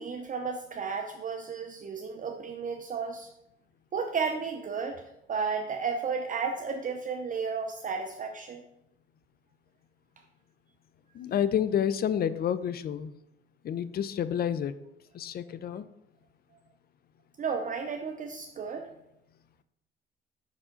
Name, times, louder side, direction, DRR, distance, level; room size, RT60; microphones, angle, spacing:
voice 1, 0.0-3.3 3.9-5.0 5.3-8.6 17.4-18.9, right 5 dB, 40° right, 3 dB, 0.6 m, -33 dB
voice 2, 11.2-13.1 13.6-14.7 15.1-15.8, left 9 dB, 50° left, 14 dB, 0.4 m, -29 dB
5.6 x 4.8 x 3.7 m, 0.85 s
cardioid pair, 90°, 20 cm